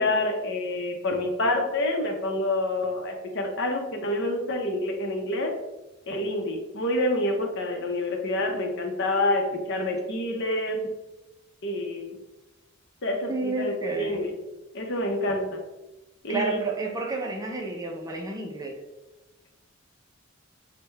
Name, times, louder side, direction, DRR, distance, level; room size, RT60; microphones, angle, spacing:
voice 1, 0.0-5.5 6.1-10.8 11.6-12.2 13.0-14.3 14.7-15.6 16.2-16.6, left 1 dB, 60° left, 3 dB, 0.7 m, -27 dB
voice 2, 13.3-14.3 16.3-18.8, right 3 dB, 20° right, 1 dB, 0.5 m, -30 dB
6.3 x 2.2 x 3.2 m, 1.0 s
head